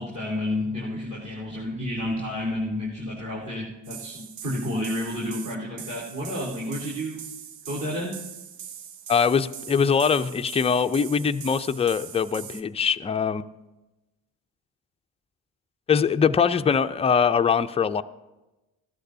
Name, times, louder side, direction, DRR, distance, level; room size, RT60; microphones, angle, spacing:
voice 1, 0.0-7.2 7.7-8.2, left 1 dB, 40° right, -7 dB, 3.7 m, -30 dB
sound 1, 3.8-12.6, right 9 dB, 90° right, 0.8 m, -41 dB
voice 2, 9.1-13.5 15.9-18.0, left 6 dB, 15° left, 10 dB, 0.3 m, -22 dB
16.0 x 13.0 x 2.7 m, 1.0 s
supercardioid pair, 60°, 45 cm